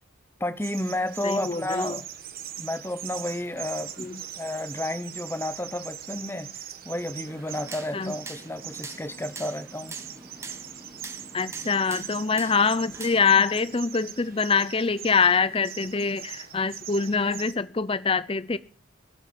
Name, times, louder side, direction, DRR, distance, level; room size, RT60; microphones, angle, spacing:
voice 1, 0.4-2.0 2.6-6.5 6.8-10.0 16.5-16.6, left 1 dB, 10° left, 1.0 m, -31 dB
sound 1, 0.6-17.5, right 10 dB, 45° right, 1.4 m, -41 dB
voice 2, 1.2-2.0 4.0-4.2 7.9-8.1 11.3-18.6, left 5 dB, 25° left, 0.6 m, -24 dB
sound 2, 7.3-13.4, right 3 dB, 15° right, 1.2 m, -43 dB
16.5 x 8.2 x 7.5 m
head